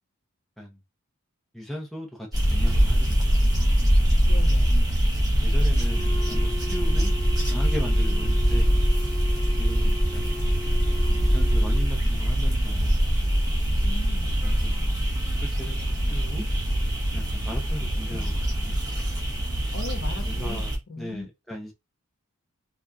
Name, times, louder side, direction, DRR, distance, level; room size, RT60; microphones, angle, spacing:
voice 1, 1.5-3.3 5.2-7.1 7.5-8.7 9.6-10.3 11.1-13.0 14.4-15.0 15.4-16.4 17.1-18.8 20.3-21.7, equal, ahead, 0.8 m, -37 dB
sound 1, 2.3-20.8, equal, 15° right, 1.1 m, -23 dB
voice 2, 4.2-4.8 13.8-14.4 18.1-18.3 19.7-21.3, left 2 dB, 65° left, 1.0 m, -38 dB
Wind instrument woodwind instrument, 5.8-11.9, left 2 dB, 35° left, 1.3 m, -38 dB
3.8 x 3.1 x 2.3 m
head